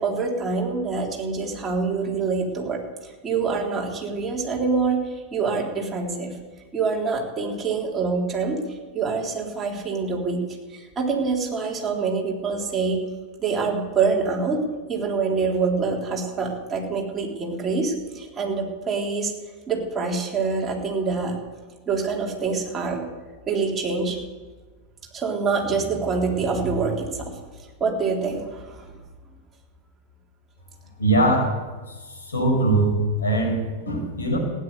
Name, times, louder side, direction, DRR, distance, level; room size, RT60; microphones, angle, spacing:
voice 1, 0.0-6.3 6.7-10.4 10.7-13.0 13.4-14.6 14.9-19.3 19.7-21.4 21.9-23.1 23.5-24.2 25.1-28.9, right 4 dB, 20° right, -1 dB, 3.6 m, -26 dB
voice 2, 31.0-31.5 32.2-33.6 33.9-34.4, right 2 dB, 70° left, 1 dB, 5.8 m, -21 dB
16.0 x 10.0 x 8.4 m, 1.3 s
figure-of-eight pair, 90°, 0 cm